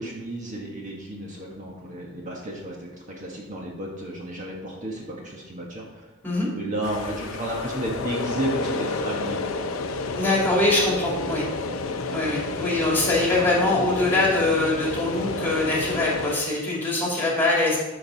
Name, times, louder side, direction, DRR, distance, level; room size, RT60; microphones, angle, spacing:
voice 1, 0.0-2.9 3.2-6.0 6.5-9.4, right 1 dB, 40° right, -2 dB, 1.4 m, -32 dB
sound 1, 6.8-16.3, left 3 dB, 85° left, 0.7 m, -30 dB
voice 2, 10.1-11.4 12.1-17.8, left 2 dB, 10° left, -4 dB, 2.7 m, -23 dB
12.0 x 5.5 x 4.1 m, 1.1 s
head